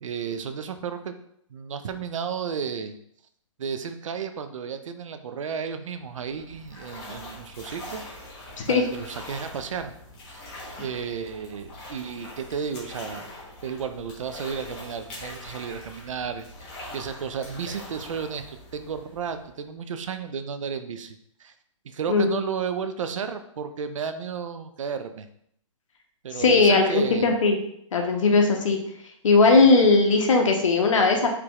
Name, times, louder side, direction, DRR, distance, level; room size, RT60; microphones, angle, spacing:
voice 1, 0.0-1.1 1.5-3.0 3.6-8.0 8.7-9.9 10.3-10.4 10.8-13.3 13.6-21.5 21.8-25.3 26.2-27.3, right 6 dB, 70° right, 9 dB, 0.6 m, -33 dB
sound 1, 6.0-19.7, left 1 dB, 25° left, 1.3 m, -43 dB
voice 2, 26.4-27.6 27.9-28.8 29.2-31.3, left 3 dB, 70° left, 2 dB, 1.1 m, -18 dB
4.9 x 3.4 x 3.0 m, 0.69 s
hypercardioid pair, 155°, 17 cm